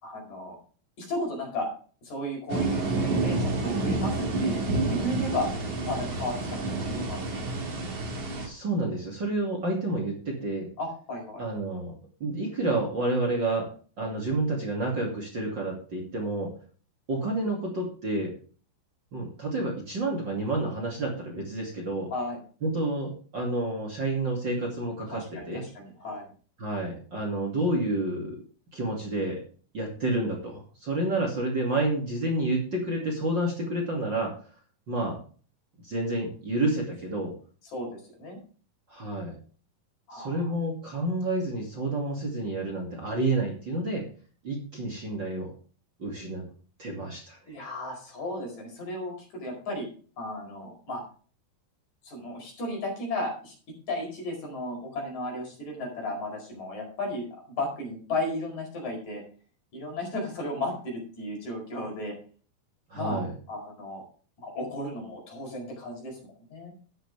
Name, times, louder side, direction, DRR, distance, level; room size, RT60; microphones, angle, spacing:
voice 1, 0.0-0.6 1.0-1.7 2.0-5.5 5.8-7.9 10.8-11.4 22.1-22.4 25.1-26.3 37.7-38.4 40.1-40.5 47.5-49.9 50.2-51.0 52.0-53.5 53.9-57.3 57.6-59.2 59.7-62.2 62.9-64.0 64.4-66.2 66.5-66.7, left 1 dB, 55° left, 1 dB, 6.0 m, -34 dB
sound 1, 2.5-8.5, right 2 dB, 55° right, 4.1 m, -29 dB
voice 2, 8.4-10.7 11.4-11.9 12.2-13.7 14.0-16.5 17.1-18.3 19.1-22.1 22.6-25.6 26.6-28.4 28.7-29.4 29.7-34.3 34.9-35.2 35.8-37.3 38.9-39.3 40.1-44.0 44.4-45.5 46.0-46.4 46.8-47.6 62.9-63.3, right 2 dB, 35° right, 0 dB, 2.9 m, -29 dB
12.5 x 10.0 x 3.5 m, 0.40 s
omnidirectional pair, 4.1 m